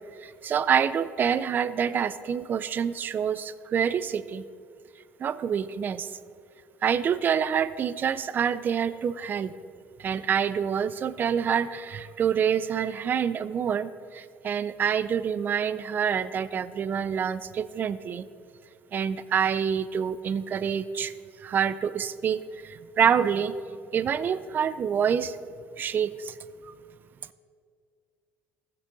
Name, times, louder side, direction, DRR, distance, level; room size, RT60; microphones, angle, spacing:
voice 1, 0.2-4.4 5.2-6.1 6.8-9.5 10.0-18.3 18.9-21.1 21.4-23.5 23.9-25.4 25.8-26.3 26.6-26.7, right 7 dB, 35° right, 15 dB, 0.4 m, -27 dB
15.0 x 6.7 x 3.9 m, 2.2 s
cardioid pair, 115°, 6 cm